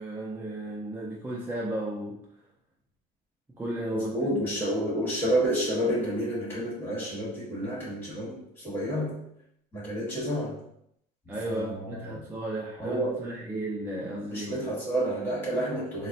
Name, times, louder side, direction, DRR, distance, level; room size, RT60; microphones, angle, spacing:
voice 1, 0.0-2.2 3.6-4.3 11.3-14.7, right 1 dB, 10° right, -4 dB, 0.4 m, -34 dB
voice 2, 3.9-9.2 9.7-10.5 11.5-12.2 12.8-13.1 14.0-16.1, right 1 dB, 10° left, -8 dB, 1.4 m, -30 dB
3.9 x 2.1 x 2.6 m, 0.76 s
cardioid pair, 150°, 17 cm